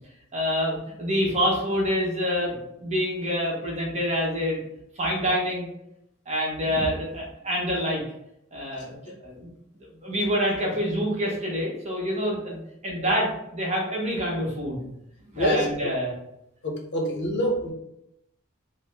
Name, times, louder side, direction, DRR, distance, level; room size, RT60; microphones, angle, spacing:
voice 1, 0.3-4.6 5.0-5.7 6.3-8.0 8.5-8.9 9.2-9.5 10.0-12.6 12.8-14.8 15.3-16.1, equal, 35° right, -3 dB, 1.0 m, -26 dB
voice 2, 15.4-15.9 16.6-17.7, equal, 55° left, 1 dB, 0.6 m, -26 dB
3.4 x 2.0 x 3.3 m, 0.81 s
head